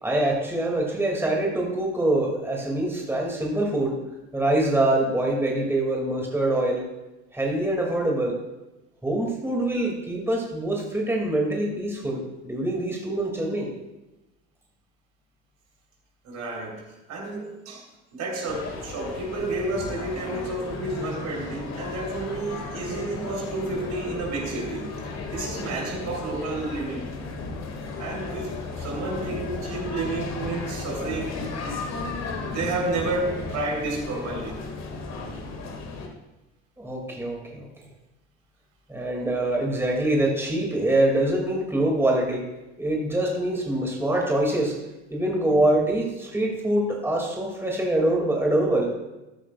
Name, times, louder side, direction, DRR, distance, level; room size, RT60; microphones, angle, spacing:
voice 1, 0.0-4.0 4.3-6.9 7.3-8.4 9.0-13.7 36.8-37.7 38.9-42.5 42.8-44.8 45.1-48.9, right 1 dB, 5° right, -1 dB, 2.4 m, -24 dB
voice 2, 16.2-16.8 17.1-17.8 18.1-24.9 25.3-27.1 28.0-31.4 32.4-34.6, right 2 dB, 50° right, -1 dB, 3.7 m, -31 dB
sound 1, 18.5-36.1, left 3 dB, 50° left, 2.1 m, -35 dB
14.5 x 10.5 x 2.4 m, 1.0 s
hypercardioid pair, 65°, 35 cm